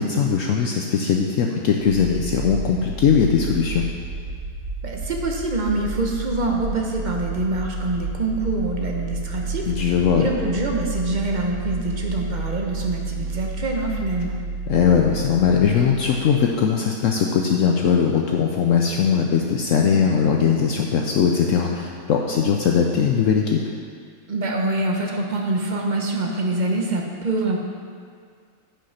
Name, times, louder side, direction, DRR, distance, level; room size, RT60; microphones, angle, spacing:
voice 1, 0.0-3.8 9.7-10.3 14.7-23.6, left 7 dB, 70° left, 1 dB, 0.9 m, -20 dB
sound 1, 1.8-16.5, right 3 dB, 75° right, 2.4 m, -31 dB
voice 2, 4.8-14.4 24.3-27.6, right 2 dB, 35° right, 0 dB, 0.9 m, -25 dB
9.1 x 5.2 x 5.7 m, 2.1 s
omnidirectional pair, 1.5 m